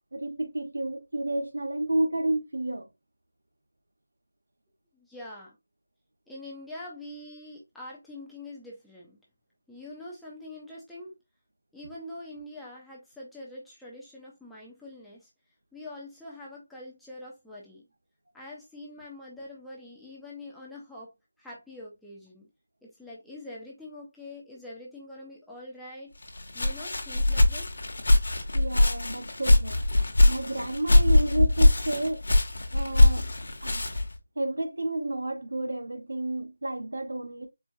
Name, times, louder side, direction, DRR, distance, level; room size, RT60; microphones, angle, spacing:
voice 1, 0.1-2.9 28.5-29.8 30.3-32.2 32.7-33.3 33.6-33.9 34.4-37.5, right 1 dB, 70° right, 0.9 m, -31 dB
voice 2, 4.9-5.6 6.3-9.2 9.7-11.1 11.7-15.3 15.7-17.8 18.3-21.1 21.4-22.5 22.8-26.1 26.5-27.7, left 1 dB, ahead, 0.4 m, -44 dB
Walk footsteps, 26.2-34.2, left 1 dB, 50° left, 0.9 m, -22 dB
4.4 x 2.2 x 2.6 m
figure-of-eight pair, 180°, 0 cm